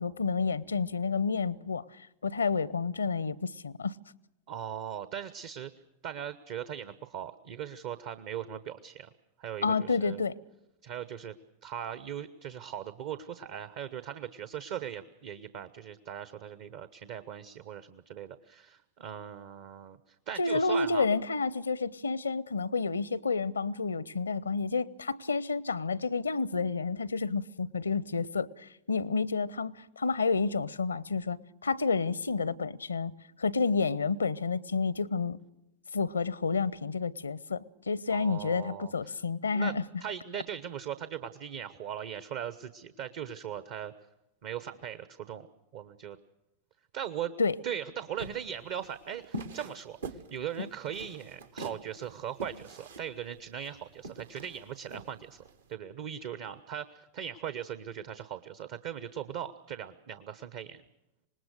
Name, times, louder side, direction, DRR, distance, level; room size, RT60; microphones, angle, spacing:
voice 1, 0.0-1.8 2.2-3.9 9.6-10.4 20.4-33.1 33.4-35.4 35.9-39.8 47.4-47.6 50.6-50.7, left 4 dB, 75° left, 0.7 m, -30 dB
voice 2, 4.5-5.7 6.0-9.1 9.4-10.2 10.8-11.4 11.6-21.1 38.1-39.1 39.5-39.7 40.0-43.9 44.4-45.5 45.7-46.2 46.9-47.3 47.6-55.4 55.7-60.8, right 9 dB, 50° right, 1.0 m, -39 dB
sound 1, 48.2-55.6, right 2 dB, 70° right, 1.5 m, -44 dB
26.0 x 20.0 x 6.7 m
figure-of-eight pair, 90°, 0 cm